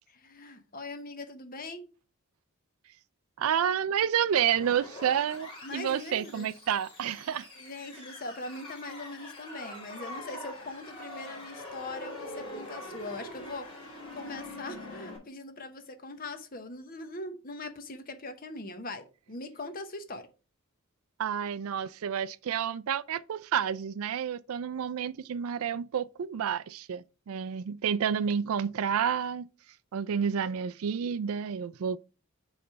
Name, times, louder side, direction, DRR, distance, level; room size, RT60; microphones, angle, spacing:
voice 1, 0.1-1.9 5.6-6.5 7.5-20.3, left 2 dB, 40° left, 0.9 m, -41 dB
voice 2, 3.4-7.5 21.2-29.5 29.9-32.0, right 8 dB, 75° right, 0.4 m, -30 dB
sound 1, 4.5-15.2, left 1 dB, 25° left, 2.6 m, -44 dB
6.5 x 3.3 x 5.6 m
head